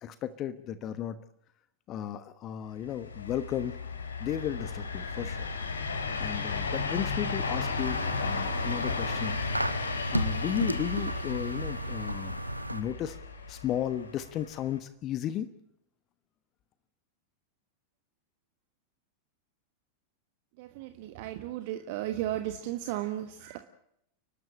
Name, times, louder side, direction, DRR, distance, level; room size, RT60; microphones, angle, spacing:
voice 1, 0.0-1.2 1.9-3.8 4.2-5.5 6.2-9.4 10.1-12.4 12.7-13.2 13.5-15.5, left 10 dB, 35° left, 12 dB, 1.2 m, -34 dB
sound 1, 2.8-14.8, left 4 dB, 70° left, 2.5 m, -34 dB
sound 2, 7.7-12.8, right 1 dB, 85° right, 0.9 m, -34 dB
voice 2, 20.6-23.6, right 13 dB, 50° right, 8 dB, 1.4 m, -35 dB
30.0 x 12.5 x 8.7 m, 0.75 s
figure-of-eight pair, 90°, 0 cm